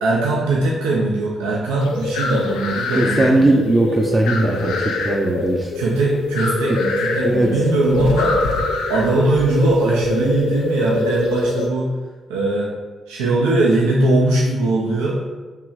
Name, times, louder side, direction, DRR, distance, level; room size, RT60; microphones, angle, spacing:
voice 1, 0.0-3.5 5.7-11.9 12.3-12.7 13.1-15.2, right 2 dB, 85° right, -4 dB, 0.5 m, -20 dB
sound 1, 1.8-11.7, left 2 dB, 80° left, 0.4 m, -23 dB
voice 2, 2.9-5.7 6.7-6.8 7.2-7.5, right 2 dB, 30° right, 0 dB, 0.5 m, -18 dB
4.7 x 2.9 x 2.4 m, 1.3 s
hypercardioid pair, 45°, 0 cm